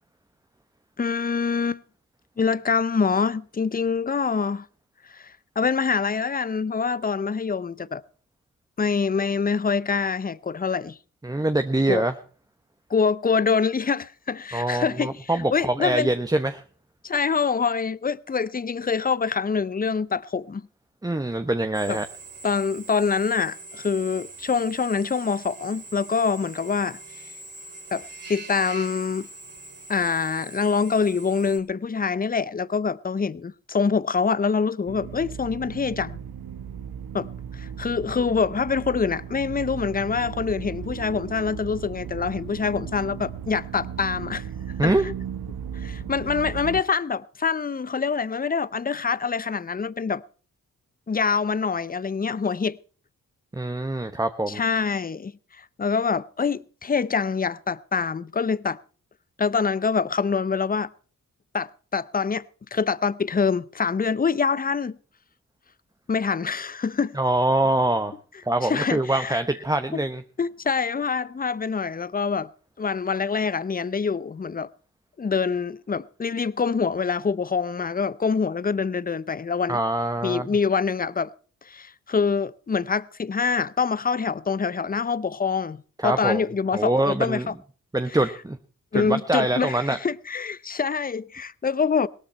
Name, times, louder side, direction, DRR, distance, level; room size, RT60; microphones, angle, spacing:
voice 1, 1.0-1.8 2.4-4.7 5.1-8.0 8.8-11.0 11.9-12.0 12.9-16.1 17.0-20.7 21.9-22.0 22.4-27.0 27.9-28.0 28.3-29.3 29.9-36.2 37.1-37.3 37.5-44.5 44.8-44.9 45.7-50.2 51.1-52.8 54.5-55.3 55.8-58.8 59.4-60.9 61.5-62.4 62.7-65.0 66.1-67.2 68.6-69.4 69.9-70.0 70.4-72.5 72.8-74.7 75.2-79.8 80.2-81.3 81.7-87.5 88.9-92.1, left 5 dB, 25° left, 0.6 m, -25 dB
voice 2, 11.2-12.1 14.5-16.6 21.0-22.1 44.8-45.1 53.5-54.6 67.1-68.1 68.4-70.2 79.7-80.5 86.0-86.4 86.7-87.5 87.9-88.6 88.9-90.0, right 1 dB, 10° right, 1.0 m, -24 dB
Drill, 21.7-31.6, right 3 dB, 30° right, 3.7 m, -43 dB
sound 1, 34.9-46.8, right 8 dB, 85° right, 1.0 m, -36 dB
17.5 x 13.0 x 4.3 m
cardioid pair, 55°, 36 cm